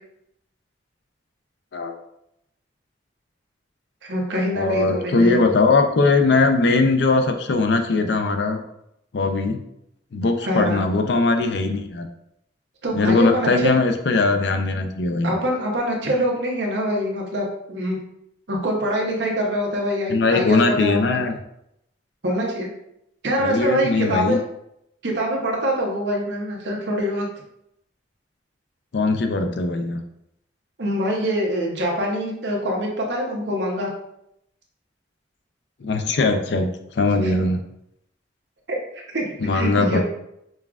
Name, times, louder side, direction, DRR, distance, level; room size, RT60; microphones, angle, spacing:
voice 1, 4.0-5.4 10.5-10.8 12.8-13.8 15.2-18.0 18.5-21.2 22.2-22.7 23.2-24.4 25.0-27.3 30.8-33.9 37.2-37.3 38.7-38.8 39.1-40.0, equal, 70° right, -1 dB, 0.9 m, -24 dB
voice 2, 4.5-8.6 9.1-9.6 10.1-12.1 12.9-15.3 20.1-21.3 23.4-24.4 28.9-30.0 35.8-36.7 36.9-37.6 39.4-40.0, left 3 dB, 65° left, 5 dB, 0.4 m, -20 dB
5.3 x 2.3 x 2.4 m, 0.78 s
head